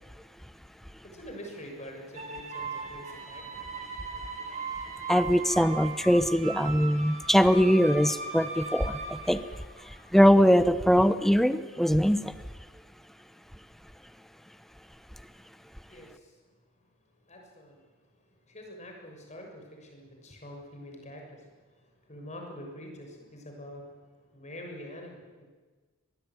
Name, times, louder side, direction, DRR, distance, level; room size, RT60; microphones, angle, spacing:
voice 1, 1.0-3.6 15.9-16.4 17.2-17.8 18.2-23.9 24.3-25.4, equal, 35° left, 2 dB, 6.7 m, -45 dB
sound 1, 2.1-10.1, right 3 dB, 35° right, 3.8 m, -38 dB
voice 2, 5.1-9.4 10.1-12.3, equal, ahead, 11 dB, 0.9 m, -22 dB
25.0 x 20.5 x 9.6 m, 1.4 s
head